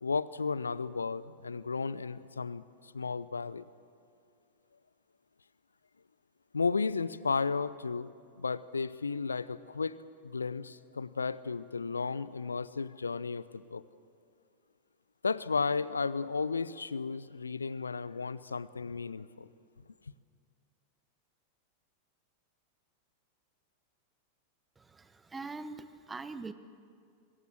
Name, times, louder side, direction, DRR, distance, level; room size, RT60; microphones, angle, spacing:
voice 1, 0.0-3.6 6.5-13.8 15.2-19.5, left 4 dB, 75° left, 0.6 m, -34 dB
voice 2, 24.8-26.5, right 3 dB, 15° right, 1.0 m, -43 dB
23.0 x 20.5 x 7.9 m
figure-of-eight pair, 90°, 0 cm